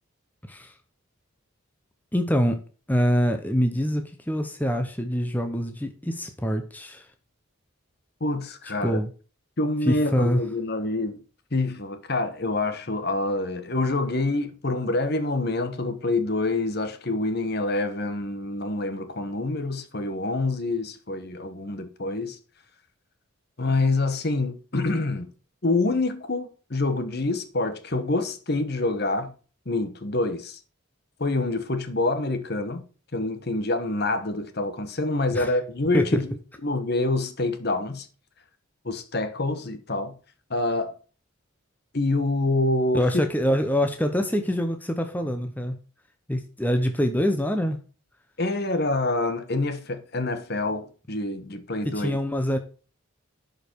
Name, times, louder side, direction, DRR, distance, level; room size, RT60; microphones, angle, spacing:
voice 1, 2.1-2.6 2.9-7.1 8.8-9.1 9.8-10.4 35.3-35.5 35.9-36.2 42.9-45.8 46.3-47.8 51.8-52.6, equal, 10° left, 0.8 m, -25 dB
voice 2, 8.2-9.0 9.6-11.2 11.5-22.4 23.6-25.3 25.6-29.3 29.7-30.6 31.2-32.8 33.1-36.3 36.6-38.1 38.8-40.1 40.5-40.9 41.9-43.0 48.4-52.1, left 2 dB, 50° left, 1.2 m, -26 dB
11.5 x 5.2 x 4.5 m
head